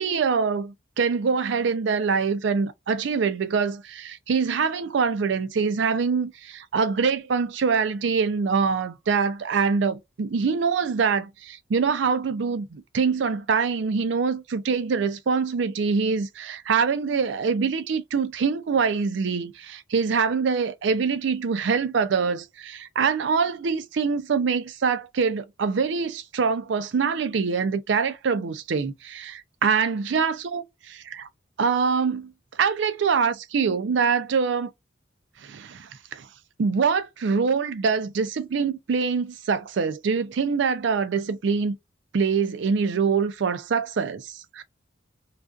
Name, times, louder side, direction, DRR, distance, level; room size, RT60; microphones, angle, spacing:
voice 1, 0.0-31.3 31.6-32.3 32.6-34.7 35.4-36.3 36.6-41.8 42.1-44.6, right 5 dB, 65° right, 0.4 m, -24 dB
2.4 x 2.3 x 2.3 m
head